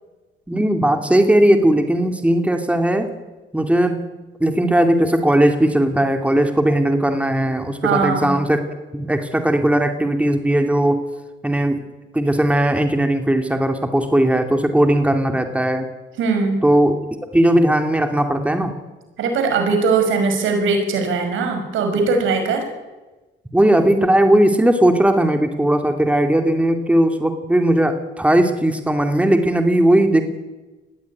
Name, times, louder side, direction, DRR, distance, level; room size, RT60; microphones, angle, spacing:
voice 1, 0.5-3.1 3.5-4.0 4.4-8.6 8.9-11.0 11.4-11.8 12.1-15.9 16.6-17.0 17.3-18.7 23.5-30.3, right 1 dB, 5° right, 6 dB, 2.5 m, -17 dB
voice 2, 7.8-8.3 16.2-16.6 19.2-22.7, right 4 dB, 80° right, 5 dB, 5.5 m, -20 dB
20.5 x 16.0 x 9.7 m, 1.2 s
cardioid pair, 90°, 20 cm